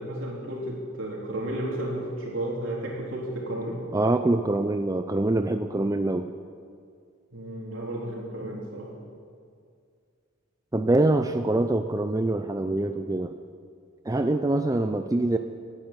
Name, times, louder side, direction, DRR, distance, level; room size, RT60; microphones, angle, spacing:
voice 1, 0.0-3.8 7.3-8.9, right 1 dB, 70° right, -2 dB, 3.5 m, -33 dB
voice 2, 3.9-6.3 10.7-13.3 14.1-15.4, right 2 dB, 15° right, 8 dB, 0.5 m, -24 dB
18.0 x 9.9 x 7.4 m, 2.2 s
head